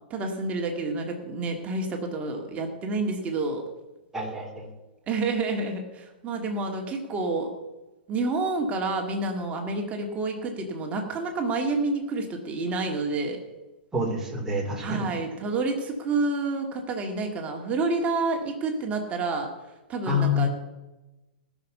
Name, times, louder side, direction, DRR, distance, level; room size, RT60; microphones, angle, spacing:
voice 1, 0.1-3.6 5.1-7.5 8.1-13.4 14.8-19.5 19.9-20.5, right 3 dB, 25° right, 2 dB, 2.3 m, -29 dB
voice 2, 4.1-4.7 13.9-15.1 20.1-20.5, left 3 dB, 10° right, -2 dB, 3.8 m, -27 dB
19.5 x 6.5 x 5.6 m, 1.1 s
hypercardioid pair, 115°, 5 cm